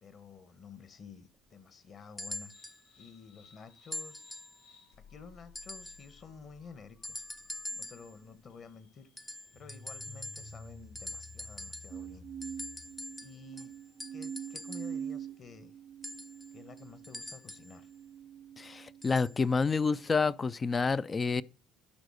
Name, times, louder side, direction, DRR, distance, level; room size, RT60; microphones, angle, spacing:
voice 1, 0.0-2.5 3.0-4.2 5.1-7.2 7.8-9.1 9.5-12.3 13.2-13.7 14.1-15.7 16.5-17.9, left 5 dB, 40° left, 1.5 m, -51 dB
sound 1, 2.2-2.8 3.9-4.6 5.6-6.1 7.0-8.1 9.2-10.7 11.0-12.0 12.4-15.0 16.0-17.8 19.0-19.4 20.3-20.4, left 1 dB, 10° left, 0.7 m, -44 dB
sound 2, 2.5-13.1, left 3 dB, 85° left, 4.5 m, -55 dB
sound 3, 11.9-19.3 20.0-20.5, right 8 dB, 45° right, 0.5 m, -44 dB
voice 2, 18.6-21.4, left 4 dB, 25° left, 0.4 m, -29 dB
11.5 x 4.1 x 6.5 m
cardioid pair, 110°, 0 cm